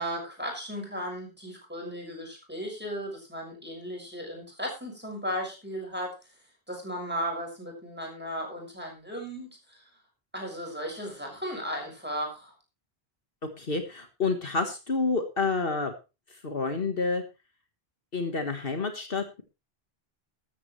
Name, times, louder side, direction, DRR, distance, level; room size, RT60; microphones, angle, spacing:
voice 1, 0.0-6.1 6.7-9.8 10.3-12.5, equal, 10° right, 0 dB, 6.4 m, -35 dB
voice 2, 13.6-15.9 16.3-17.2 18.1-19.4, left 4 dB, 65° left, 6 dB, 1.7 m, -29 dB
14.5 x 13.0 x 3.2 m, 0.29 s
omnidirectional pair, 1.0 m